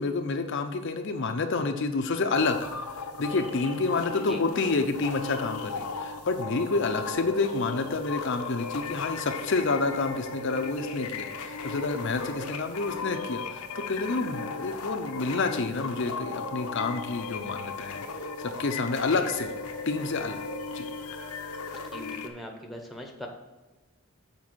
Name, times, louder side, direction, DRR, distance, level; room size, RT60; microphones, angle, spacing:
voice 1, 0.0-2.7 3.2-18.0 18.4-19.5 19.9-20.4 20.7-20.9, left 3 dB, 55° left, 5 dB, 0.6 m, -29 dB
sound 1, 2.4-22.3, left 4 dB, 90° left, 0.8 m, -36 dB
voice 2, 21.9-23.3, left 1 dB, ahead, 2 dB, 0.9 m, -41 dB
7.4 x 4.6 x 6.2 m, 1.2 s
head